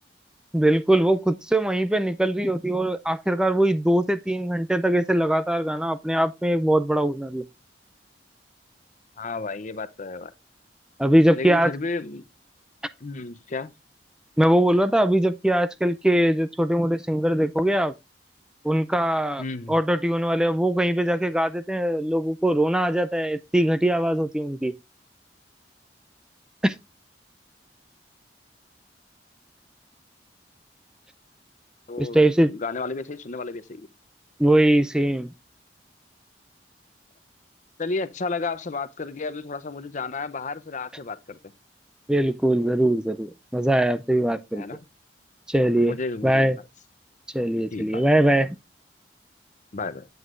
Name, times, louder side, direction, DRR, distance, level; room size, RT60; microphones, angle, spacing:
voice 1, 0.5-7.4 11.0-11.7 14.4-17.9 18.6-19.4 19.7-24.7 26.6-26.8 32.0-32.5 34.4-35.3 42.1-44.6 45.5-45.9 46.2-46.6 47.3-48.6, right 1 dB, 5° right, 0.4 m, -21 dB
voice 2, 9.2-10.3 11.3-12.2 13.0-13.7 19.4-19.8 31.9-33.9 37.8-41.4 44.5-44.8 45.8-46.6 47.7-48.0 49.7-50.1, left 3 dB, 45° left, 0.7 m, -32 dB
9.4 x 7.9 x 2.5 m
head